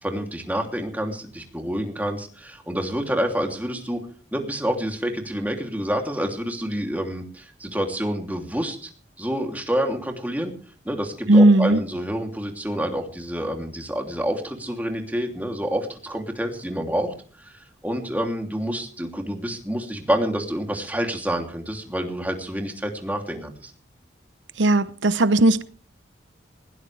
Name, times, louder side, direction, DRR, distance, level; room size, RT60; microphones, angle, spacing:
voice 1, 0.0-4.0 4.3-8.9 9.2-10.5 10.8-23.7, equal, 10° right, 2.9 m, -28 dB
voice 2, 11.3-11.8 24.6-25.6, right 2 dB, 85° right, 0.9 m, -16 dB
20.5 x 17.0 x 3.4 m
head